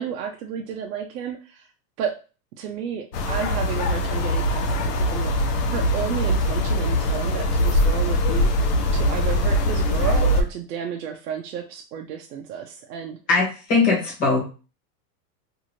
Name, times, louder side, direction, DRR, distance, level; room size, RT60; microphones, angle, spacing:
voice 1, 0.0-1.7 2.0-2.1 2.6-4.7 5.0-5.3 5.7-8.5 8.9-13.2, right 8 dB, 70° right, 2 dB, 0.6 m, -32 dB
sound 1, 3.1-10.4, left 1 dB, 70° left, 0.8 m, -22 dB
voice 2, 13.3-14.4, left 4 dB, 20° left, -3 dB, 0.8 m, -20 dB
2.6 x 2.5 x 2.9 m, 0.34 s
supercardioid pair, 175°, 48 cm